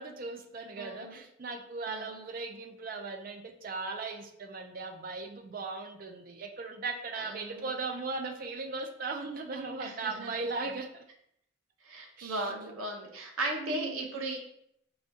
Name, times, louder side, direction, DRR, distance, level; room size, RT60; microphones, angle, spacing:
voice 1, 0.0-11.0 12.2-12.7 13.5-14.1, right 3 dB, 45° right, 5 dB, 0.4 m, -38 dB
voice 2, 0.8-1.1 1.9-2.2 7.2-7.6 9.8-10.3 11.8-14.4, right 2 dB, 90° right, 2 dB, 0.7 m, -36 dB
4.9 x 2.3 x 2.6 m, 0.74 s
head